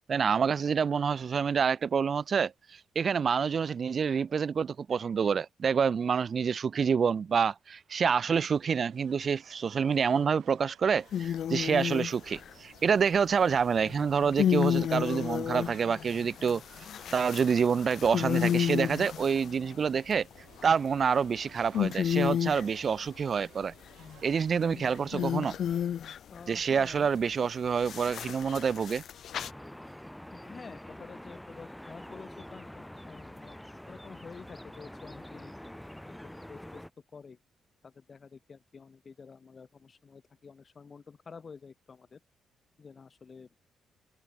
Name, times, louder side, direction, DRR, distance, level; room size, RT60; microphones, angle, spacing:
voice 1, 0.1-16.6 17.1-20.3 20.6-23.7 24.2-25.5 26.5-29.0, right 6 dB, 40° right, 0.5 m, -27 dB
sound 1, 8.4-25.9, right 12 dB, 85° right, 6.4 m, -59 dB
sound 2, 11.1-12.5 13.8-19.7 20.4-21.0 21.4-21.5 21.7-22.7 24.0-26.4 27.8-29.5, left 9 dB, 60° left, 1.1 m, -31 dB
voice 2, 26.3-27.1 30.3-35.5 36.0-36.8 37.1-37.4 37.8-42.2 42.8-43.6, left 5 dB, 35° left, 5.4 m, -49 dB
sound 3, 29.3-36.9, left 1 dB, 5° left, 4.2 m, -46 dB
cardioid pair, 135°, 0 cm